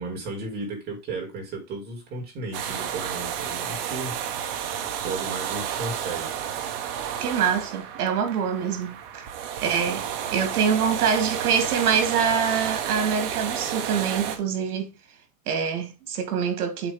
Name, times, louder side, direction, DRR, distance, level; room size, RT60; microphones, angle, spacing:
voice 1, 0.0-4.8 5.0-6.3, right 3 dB, 20° right, 2.2 m, -34 dB
sound 1, 2.5-14.4, right 9 dB, 40° right, 1.1 m, -31 dB
voice 2, 7.2-9.3 9.6-10.0 10.3-14.9 15.5-16.9, right 7 dB, 80° right, 2.4 m, -25 dB
7.8 x 3.0 x 5.0 m
supercardioid pair, 170°, 44 cm